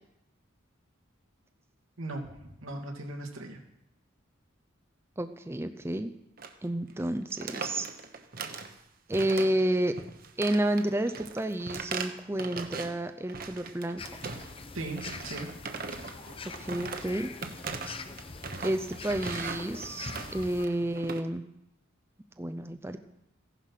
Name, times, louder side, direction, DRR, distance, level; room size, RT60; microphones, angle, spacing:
voice 1, 2.0-3.6 14.7-15.5, right 2 dB, 90° right, 1 dB, 2.6 m, -38 dB
voice 2, 5.2-6.1 6.6-7.9 9.1-9.9 10.4-14.0 16.6-17.3 18.6-21.5 22.4-23.0, right 1 dB, 10° right, 9 dB, 0.5 m, -30 dB
sound 1, 6.4-6.6 6.9-7.0 7.3-8.8 9.1-9.7 10.0-13.0 13.3-14.6 15.0-21.2, right 4 dB, 45° right, 1.1 m, -39 dB
sound 2, 14.0-20.7, left 3 dB, 25° left, 0.8 m, -43 dB
15.5 x 11.0 x 5.8 m, 0.85 s
head